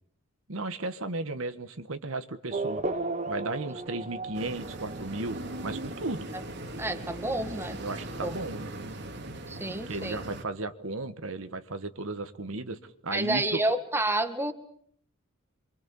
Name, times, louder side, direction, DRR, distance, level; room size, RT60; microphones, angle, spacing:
voice 1, 0.5-2.8 3.3-6.3 7.8-8.7 9.7-12.8 13.0-13.6, right 2 dB, 65° right, 9 dB, 1.5 m, -35 dB
Race car auto racing / Accelerating revving vroom, 2.5-8.6, right 3 dB, 35° right, 1.3 m, -37 dB
sound 1, 4.3-10.4, right 1 dB, 50° right, 2.4 m, -39 dB
voice 2, 6.8-7.8 8.2-8.3 9.5-10.2 13.1-14.5, right 2 dB, 10° right, 8 dB, 1.8 m, -29 dB
27.5 x 24.5 x 7.1 m, 0.63 s
head